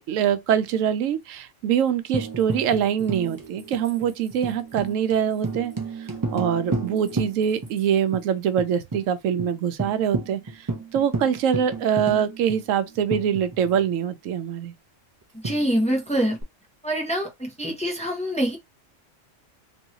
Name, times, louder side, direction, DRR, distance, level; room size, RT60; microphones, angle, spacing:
voice 1, 0.0-5.7 6.0-10.7 10.9-14.7, right 8 dB, 85° right, 1.0 m, -24 dB
Tambourine, 2.1-7.8 8.1-8.2 8.6-9.0 9.4-9.5 9.8-13.9 15.4-16.4, right 3 dB, 30° right, 0.3 m, -32 dB
voice 2, 15.4-16.4 16.8-18.6, equal, 5° left, 0.8 m, -25 dB
3.1 x 2.7 x 2.7 m
omnidirectional pair, 1.3 m